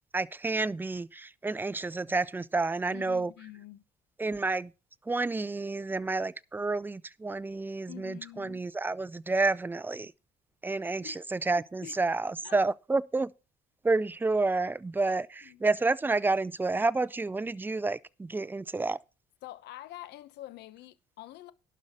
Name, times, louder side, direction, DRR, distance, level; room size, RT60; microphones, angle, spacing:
voice 1, 0.1-3.3 4.2-4.7 5.1-10.1 10.6-13.3 13.8-19.0, right 3 dB, 10° right, 0.4 m, -30 dB
voice 2, 2.9-3.8 7.9-8.7 11.0-11.2 11.8-12.0 12.4-12.6 15.0-15.2 15.4-15.6 19.4-21.5, left 15 dB, 80° left, 1.1 m, -46 dB
11.5 x 5.5 x 6.2 m
cardioid pair, 110°, 17 cm